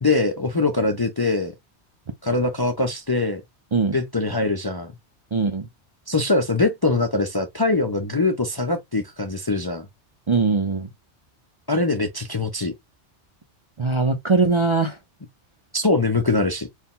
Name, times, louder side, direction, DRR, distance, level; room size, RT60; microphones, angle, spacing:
voice 1, 0.0-1.5 2.2-3.4 3.9-4.9 6.1-9.9 11.7-12.7 15.7-16.7, left 3 dB, 30° left, 0.5 m, -22 dB
voice 2, 5.3-5.7 10.3-10.9 13.8-15.0, right 4 dB, 40° right, 0.5 m, -21 dB
4.5 x 2.3 x 3.6 m
omnidirectional pair, 1.2 m